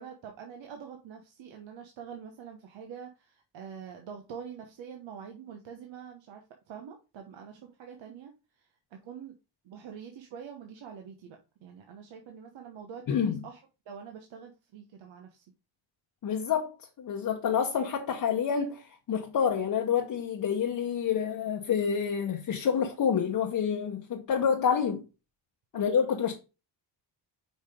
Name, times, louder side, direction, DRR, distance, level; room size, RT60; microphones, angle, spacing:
voice 1, 0.0-9.3 9.6-13.6 13.9-15.4 25.7-25.9, right 7 dB, 75° right, 1.2 m, -45 dB
voice 2, 13.1-13.4 16.2-25.0 25.7-26.3, left 7 dB, 45° left, 0.9 m, -28 dB
5.3 x 5.2 x 3.6 m
cardioid pair, 130°, 46 cm